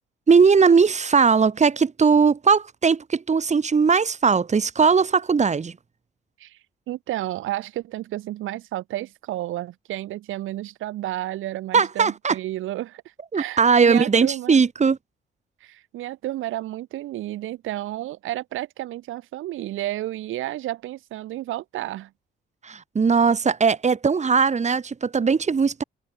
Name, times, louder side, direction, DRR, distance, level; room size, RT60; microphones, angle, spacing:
voice 1, 0.3-5.7 11.7-12.4 13.3-15.0 22.6-25.8, right 5 dB, 35° right, 3.6 m, -19 dB
voice 2, 6.9-13.0 13.3-14.6 15.6-22.1, right 15 dB, 85° right, 4.9 m, -31 dB
cardioid pair, 90°, 20 cm